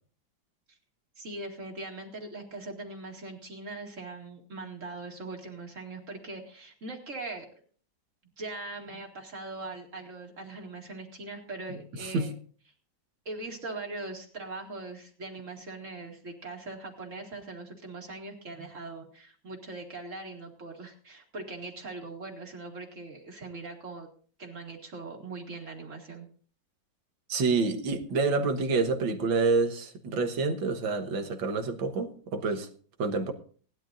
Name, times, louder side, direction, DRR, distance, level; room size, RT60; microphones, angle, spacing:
voice 1, 1.2-7.5 8.4-12.3 13.3-24.1 24.4-26.3, right 3 dB, 40° right, 2.6 m, -41 dB
voice 2, 12.0-12.3 27.3-32.7 33.0-33.3, right 4 dB, 85° right, 2.1 m, -28 dB
19.0 x 12.0 x 2.6 m
omnidirectional pair, 2.0 m